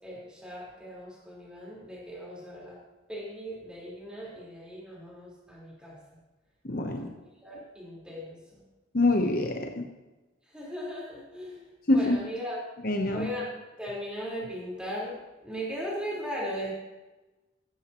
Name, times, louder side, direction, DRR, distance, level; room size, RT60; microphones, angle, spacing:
voice 1, 0.0-2.8 3.1-6.0 7.0-7.1 7.4-8.6 10.5-11.6 11.9-12.6 13.1-13.5 13.8-15.2 15.4-16.7, equal, 5° right, -5 dB, 4.4 m, -38 dB
voice 2, 6.6-7.1 8.9-9.8 11.9-12.2 12.8-13.3, left 2 dB, 45° left, 4 dB, 0.9 m, -25 dB
16.0 x 13.5 x 3.1 m, 1.1 s
head